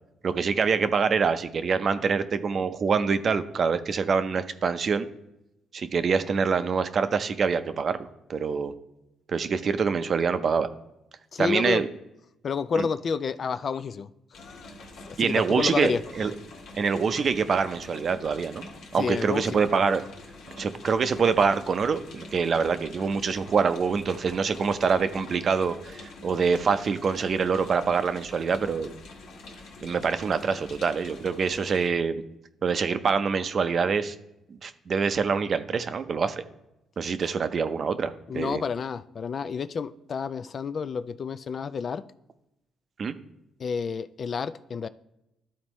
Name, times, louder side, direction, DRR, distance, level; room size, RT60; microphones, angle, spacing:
voice 1, 0.2-5.1 5.7-8.7 9.3-10.7 11.4-11.9 12.8-12.9 15.2-16.3 16.7-18.7 18.9-20.0 20.6-28.9 29.8-32.2 32.6-34.1 34.5-36.4 37.0-38.6 43.0-43.1, right 5 dB, 50° right, 11 dB, 0.6 m, -25 dB
voice 2, 11.3-11.8 12.4-14.7 15.1-16.0 19.0-19.6 38.3-42.0 43.6-44.9, left 6 dB, 50° left, 13 dB, 0.3 m, -30 dB
sound 1, 14.3-31.9, left 2 dB, 80° left, 1.3 m, -45 dB
12.5 x 4.3 x 3.0 m, 0.90 s
cardioid pair, 90°, 0 cm